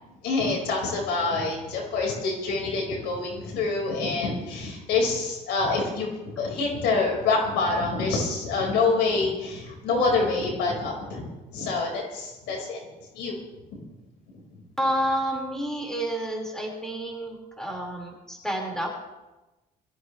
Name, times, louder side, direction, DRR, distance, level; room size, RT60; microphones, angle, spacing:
voice 1, 0.2-12.8 13.1-13.4 13.7-13.8, left 3 dB, 85° left, 0 dB, 5.0 m, -26 dB
voice 2, 14.8-18.9, right 1 dB, 5° left, -1 dB, 5.0 m, -29 dB
22.0 x 15.0 x 3.3 m, 1.1 s
cardioid pair, 110°, 17 cm